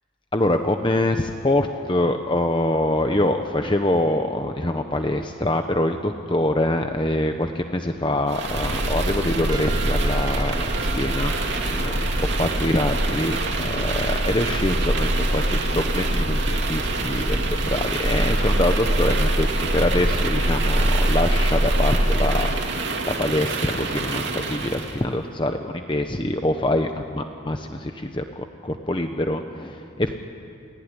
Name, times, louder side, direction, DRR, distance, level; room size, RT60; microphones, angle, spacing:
voice 1, 0.3-30.1, left 1 dB, 25° left, 5 dB, 1.0 m, -25 dB
sound 1, 8.3-25.0, right 1 dB, 65° right, 2.7 m, -23 dB
Trumpet, 9.5-12.2, right 4 dB, 20° right, 2.0 m, -39 dB
29.0 x 17.5 x 10.0 m, 2.5 s
head